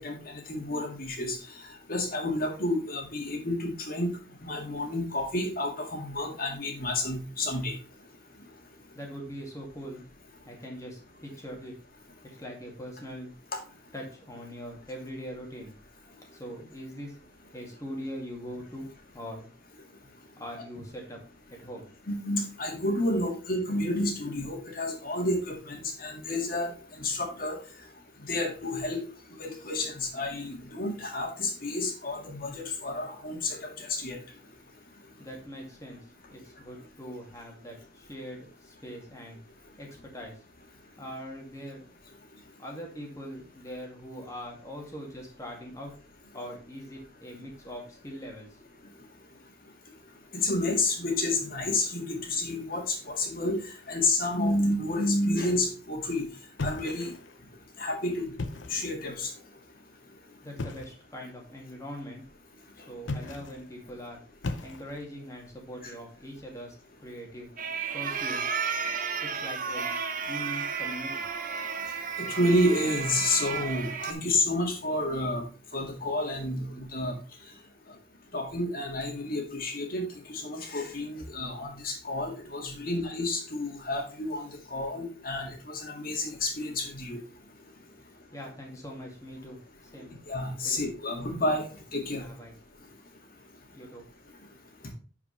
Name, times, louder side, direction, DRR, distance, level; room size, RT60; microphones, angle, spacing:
voice 1, 0.0-1.4 1.9-4.1 4.4-7.7 22.1-26.7 27.0-27.6 28.3-29.0 29.4-34.2 50.4-53.6 53.9-56.2 56.6-57.1 57.8-58.3 58.7-59.3 72.2-75.4 75.7-77.1 78.3-80.1 80.4-87.2 90.3-91.6 91.9-92.2, left 1 dB, 50° left, 2 dB, 2.0 m, -30 dB
voice 2, 8.9-10.0 10.5-11.7 12.2-13.3 13.9-15.8 16.3-17.2 17.5-19.5 20.4-21.2 21.5-21.9 35.2-39.4 39.8-40.4 41.0-41.9 42.6-45.9 46.3-48.5 60.4-62.2 62.9-64.2 64.6-66.8 67.0-67.5 67.9-68.6 69.2-69.9 70.2-71.3 88.3-90.2 90.6-90.9 92.2-92.5 93.7-94.0, equal, 15° left, 0 dB, 2.2 m, -42 dB
sound 1, 56.6-57.4 58.2-58.9 60.6-61.0 63.0-63.7 64.4-65.1, left 2 dB, 85° left, 0.8 m, -36 dB
sound 2, 67.6-74.1, right 6 dB, 45° right, 0.9 m, -33 dB
10.5 x 4.9 x 3.3 m, 0.38 s
head